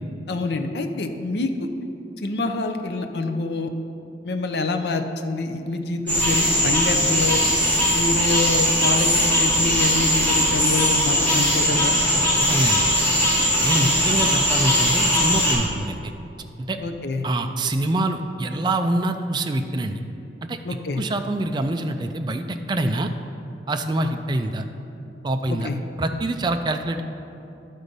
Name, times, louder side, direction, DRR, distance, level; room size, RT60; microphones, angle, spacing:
voice 1, 0.3-1.7 2.2-3.7 4.2-7.4 7.9-12.0 16.8-17.2 20.6-21.0 25.5-25.8, left 3 dB, 70° left, 6 dB, 0.6 m, -26 dB
sound 1, 6.1-15.5, equal, 10° left, 1.9 m, -20 dB
voice 2, 12.4-12.9 13.6-16.0 16.6-16.8 17.2-20.0 20.5-20.6 20.9-23.1 23.7-24.6 25.2-25.7 26.0-27.0, right 1 dB, 25° right, 6 dB, 0.4 m, -25 dB
11.0 x 4.0 x 5.2 m, 2.7 s
head